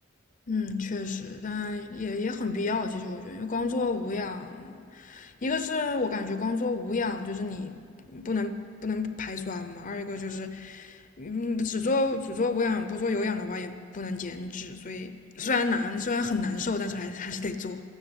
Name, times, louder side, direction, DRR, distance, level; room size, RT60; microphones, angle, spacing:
voice 1, 0.5-8.6 8.8-17.8, left 3 dB, 45° left, 0.7 m, -30 dB
13.5 x 9.9 x 8.6 m
head